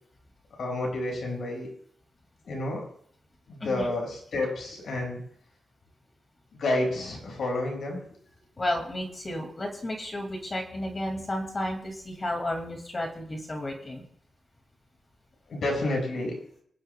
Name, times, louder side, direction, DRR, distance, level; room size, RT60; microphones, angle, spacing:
voice 1, 0.6-1.7 2.4-2.8 3.5-5.2 6.5-8.0 15.5-16.4, left 2 dB, 65° left, 0 dB, 5.4 m, -30 dB
voice 2, 3.6-4.0 8.6-14.0, left 1 dB, 25° left, 2 dB, 2.1 m, -32 dB
25.5 x 10.5 x 2.2 m, 0.63 s
wide cardioid pair, 155°, 0 cm